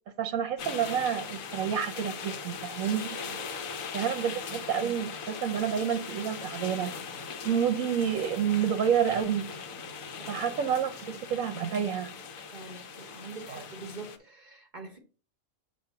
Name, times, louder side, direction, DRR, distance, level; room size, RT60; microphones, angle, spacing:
voice 1, 0.2-3.2 3.9-7.0 7.4-9.5 10.3-12.1 13.5-13.6, right 8 dB, 75° right, 1.0 m, -29 dB
sound 1, 0.6-14.2, left 5 dB, 75° left, 1.2 m, -40 dB
voice 2, 12.5-15.0, right 3 dB, 40° right, 0.8 m, -45 dB
7.0 x 2.8 x 5.5 m
omnidirectional pair, 1.5 m